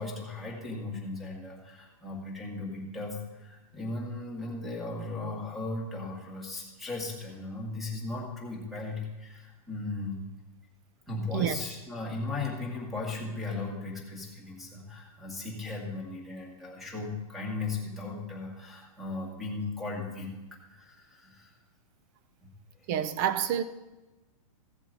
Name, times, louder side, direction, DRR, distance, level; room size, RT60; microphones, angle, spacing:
voice 1, 0.0-10.2 11.1-21.5 22.4-22.5, left 3 dB, ahead, 2.0 m, -37 dB
voice 2, 22.9-23.6, right 9 dB, 30° right, 0.6 m, -28 dB
15.5 x 7.4 x 4.0 m
hypercardioid pair, 160°, 19 cm